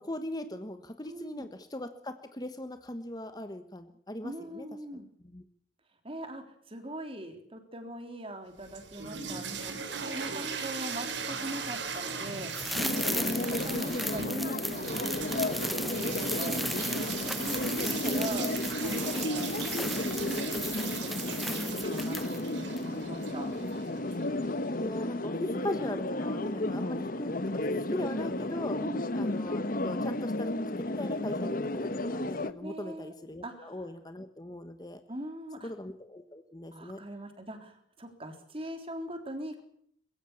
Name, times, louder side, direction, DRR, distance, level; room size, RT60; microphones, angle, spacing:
voice 1, 0.0-4.7 5.2-5.4 9.1-9.4 12.8-13.7 18.0-18.6 23.3-23.8 24.8-28.8 29.1-30.5 30.8-31.6 32.0-35.0 35.6-37.0, left 1 dB, 20° left, 9 dB, 1.3 m, -39 dB
voice 2, 1.0-1.4 4.2-5.1 6.0-19.5 20.2-23.5 28.8-29.1 32.6-33.1 33.4-33.8 35.1-35.7 36.7-39.6, right 1 dB, 30° right, 6 dB, 3.6 m, -41 dB
sound 1, 8.5-24.6, right 5 dB, 75° right, 3.6 m, -39 dB
sound 2, 12.5-22.5 22.8-22.9, equal, ahead, 1.0 m, -37 dB
sound 3, 12.7-32.5, left 1 dB, 50° left, 1.1 m, -33 dB
22.0 x 16.0 x 8.6 m, 0.65 s
head